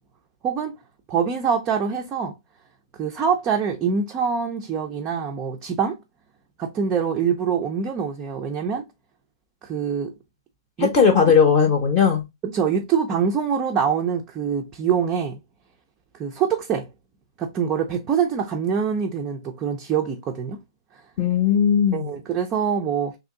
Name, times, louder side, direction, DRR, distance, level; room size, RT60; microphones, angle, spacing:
voice 1, 1.1-2.3 3.0-6.0 6.6-8.8 9.6-10.1 10.8-10.9 12.4-15.4 16.1-16.9 17.4-20.6 21.9-23.2, right 7 dB, 15° right, 0.3 m, -24 dB
voice 2, 10.8-12.2 21.2-22.1, left 6 dB, 25° left, 0.6 m, -18 dB
2.9 x 2.5 x 3.7 m
hypercardioid pair, 165°, 3 cm